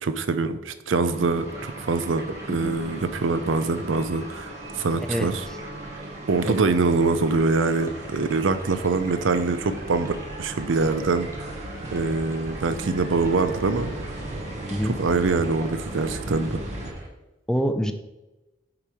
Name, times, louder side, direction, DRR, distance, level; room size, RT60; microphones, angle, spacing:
voice 1, 0.0-5.5 6.3-11.3 11.9-13.9 15.0-16.6, right 3 dB, 90° right, 11 dB, 0.5 m, -24 dB
sound 1, 1.0-16.9, right 1 dB, 35° right, 1.0 m, -37 dB
sound 2, 1.4-17.1, right 1 dB, 15° right, 1.2 m, -44 dB
voice 2, 17.5-17.9, equal, 5° left, 7 dB, 0.4 m, -25 dB
8.5 x 3.0 x 4.8 m, 1.0 s
head